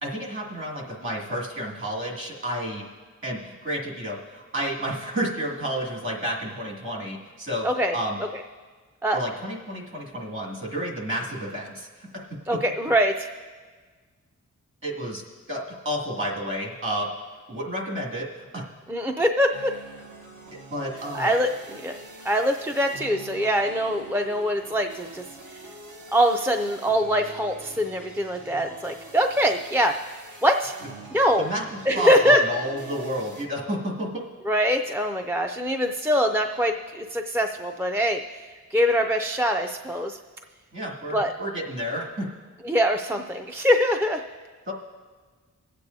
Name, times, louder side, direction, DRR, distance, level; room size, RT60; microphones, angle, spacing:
voice 1, 0.0-2.8 3.2-7.7 7.9-8.2 9.1-12.1 14.8-17.1 17.5-18.6 20.7-21.3 31.4-31.6 31.9-34.1 40.7-42.3 44.7-44.8, equal, 40° right, -2 dB, 2.3 m, -31 dB
voice 2, 7.6-8.0 9.0-9.2 12.5-13.3 18.9-19.8 21.1-22.0 22.2-25.2 25.5-25.6 26.1-30.0 30.4-30.7 31.1-31.5 31.9-32.4 34.5-40.2 41.1-41.3 42.6-44.2, equal, 10° right, 4 dB, 0.4 m, -23 dB
sound 1, 19.5-33.4, right 2 dB, 75° right, 1.4 m, -45 dB
25.0 x 8.3 x 2.7 m, 1.4 s
wide cardioid pair, 115°, 31 cm